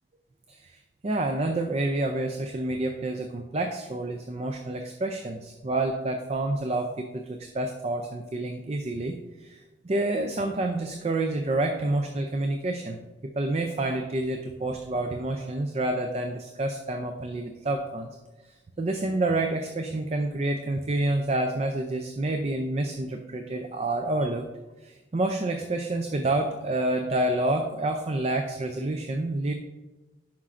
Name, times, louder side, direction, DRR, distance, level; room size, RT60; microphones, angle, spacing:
voice 1, 0.5-18.1 18.4-24.5 24.8-29.5, right 2 dB, 35° right, 5 dB, 0.4 m, -28 dB
9.8 x 6.0 x 2.5 m, 1.1 s
head